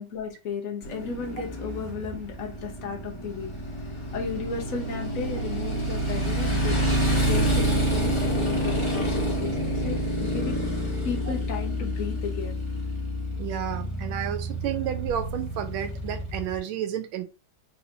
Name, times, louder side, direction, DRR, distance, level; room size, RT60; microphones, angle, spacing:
voice 1, 0.0-3.5 4.1-10.7 11.0-12.6, left 5 dB, 55° left, 1.0 m, -34 dB
Motorcycle, 0.8-16.6, right 1 dB, 20° left, 0.9 m, -28 dB
voice 2, 13.4-17.2, right 10 dB, 90° right, 1.4 m, -31 dB
4.2 x 2.7 x 2.7 m
omnidirectional pair, 2.2 m